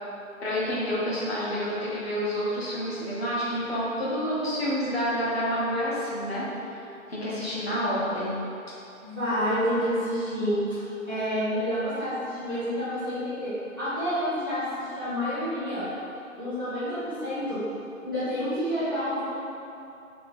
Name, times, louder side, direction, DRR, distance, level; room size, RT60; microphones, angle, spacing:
voice 1, 0.4-6.4 7.1-8.4, equal, 45° left, -8 dB, 0.8 m, -28 dB
voice 2, 9.0-10.8 11.1-15.9 16.4-17.6 18.0-19.3, equal, 15° right, -18 dB, 0.9 m, -29 dB
3.4 x 2.8 x 3.4 m, 2.7 s
figure-of-eight pair, 160°, 43 cm